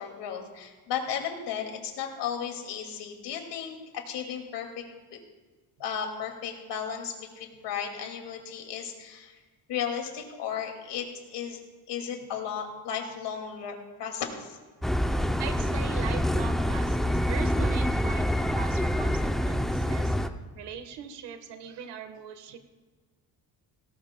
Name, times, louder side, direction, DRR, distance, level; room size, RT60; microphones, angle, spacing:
voice 1, 0.0-4.8 5.1-5.2 5.8-9.4 9.7-11.6 11.9-14.6, left 8 dB, 80° left, 3 dB, 2.4 m, -35 dB
sound 1, 14.8-20.3, equal, ahead, 0.4 m, -26 dB
voice 2, 15.4-20.1 20.5-22.6, right 8 dB, 80° right, 8 dB, 1.4 m, -40 dB
18.0 x 17.5 x 2.2 m, 1.3 s
cardioid pair, 125°, 41 cm